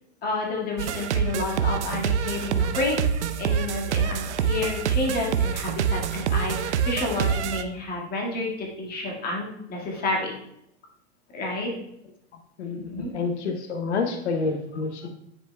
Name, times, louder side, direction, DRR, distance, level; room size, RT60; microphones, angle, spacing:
voice 1, 0.2-3.0 3.4-10.3 11.3-11.7 12.9-13.1, left 2 dB, 25° left, -1 dB, 1.8 m, -30 dB
sound 1, 0.8-7.6, right 7 dB, 85° right, 0.6 m, -26 dB
voice 2, 12.6-15.1, left 4 dB, 80° left, 5 dB, 0.8 m, -28 dB
9.9 x 4.8 x 2.2 m, 0.80 s
hypercardioid pair, 120°, 34 cm